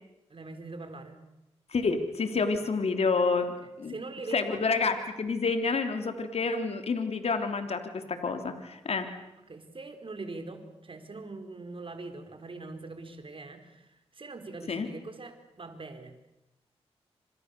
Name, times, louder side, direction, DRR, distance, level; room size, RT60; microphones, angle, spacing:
voice 1, 0.3-1.2 3.4-4.6 9.5-16.1, right 3 dB, 50° right, 8 dB, 4.6 m, -42 dB
voice 2, 1.7-3.5 3.8-3.9 4.3-9.1 14.7-14.9, left 4 dB, 65° left, 7 dB, 3.2 m, -28 dB
29.5 x 26.5 x 6.9 m, 0.94 s
cardioid pair, 45°, 11 cm